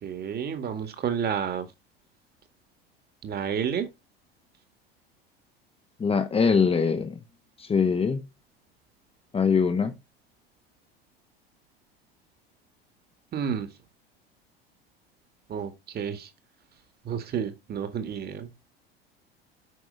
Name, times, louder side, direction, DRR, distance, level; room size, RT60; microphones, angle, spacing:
voice 1, 0.0-1.7 3.2-3.9 13.3-13.7 15.5-16.3 17.1-18.5, right 7 dB, 30° right, 1.9 m, -30 dB
voice 2, 6.0-7.2 7.6-8.3 9.3-10.0, left 5 dB, 20° left, 1.2 m, -23 dB
8.3 x 6.0 x 5.4 m
figure-of-eight pair, 75°, 31 cm